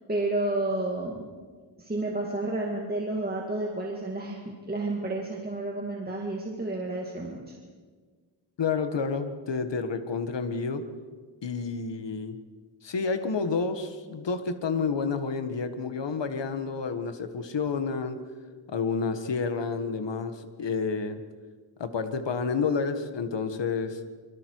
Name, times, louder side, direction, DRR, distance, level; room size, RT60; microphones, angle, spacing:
voice 1, 0.1-1.3 1.8-7.5, right 2 dB, 20° right, -2 dB, 2.2 m, -31 dB
voice 2, 8.6-10.8 11.4-12.4 12.8-18.2 18.7-21.2 21.8-24.0, left 5 dB, 60° left, 8 dB, 1.6 m, -29 dB
26.0 x 23.5 x 4.7 m, 1.5 s
wide cardioid pair, 150°, 47 cm